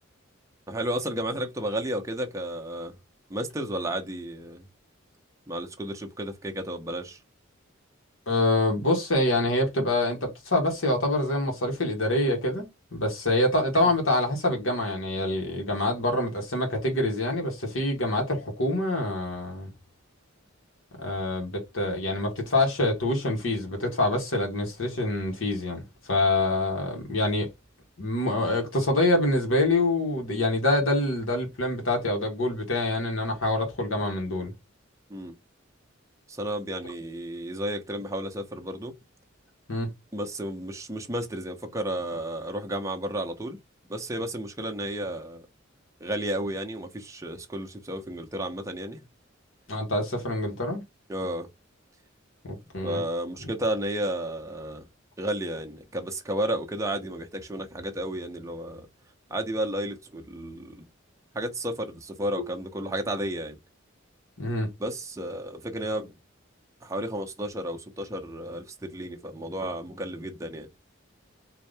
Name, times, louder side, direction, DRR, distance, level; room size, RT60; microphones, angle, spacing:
voice 1, 0.7-2.9 3.3-4.7 5.5-7.2 35.1-35.3 36.3-38.9 40.1-43.6 43.9-45.5 46.0-49.0 51.1-51.5 52.8-54.9 55.2-58.9 59.3-60.8 61.3-63.6 64.8-66.1 66.8-70.7, right 1 dB, 15° right, 0.8 m, -32 dB
voice 2, 8.3-19.7 21.0-27.5 28.0-34.5 39.7-39.9 49.7-50.8 52.4-53.0 62.4-62.5 64.4-64.7, left 1 dB, 75° left, 1.4 m, -26 dB
3.9 x 2.8 x 3.3 m
head